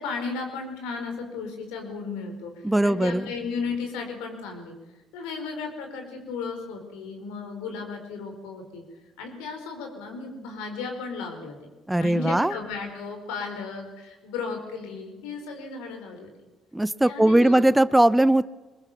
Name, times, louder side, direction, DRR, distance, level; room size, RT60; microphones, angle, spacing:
voice 1, 0.0-4.7 5.1-8.8 9.2-11.6 12.0-16.3 17.0-17.6, left 4 dB, 80° left, 4 dB, 4.5 m, -35 dB
voice 2, 2.6-3.2 11.9-12.5 16.7-18.4, right 1 dB, 10° right, 16 dB, 0.8 m, -19 dB
22.5 x 21.0 x 7.2 m, 1.2 s
hypercardioid pair, 55°, 0 cm